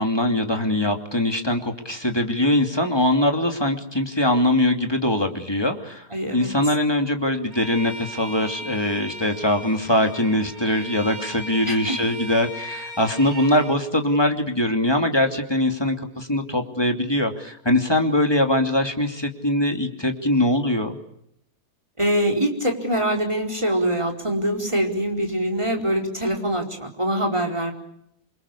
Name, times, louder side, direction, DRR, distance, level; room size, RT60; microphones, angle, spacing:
voice 1, 0.0-6.1 6.3-21.0, left 1 dB, 15° left, 4 dB, 2.7 m, -22 dB
voice 2, 6.1-6.5 11.6-12.0 22.0-27.7, right 1 dB, 15° right, 3 dB, 4.7 m, -24 dB
Bowed string instrument, 7.5-13.8, equal, 40° right, 5.8 m, -37 dB
28.5 x 24.5 x 8.5 m, 0.74 s
omnidirectional pair, 1.7 m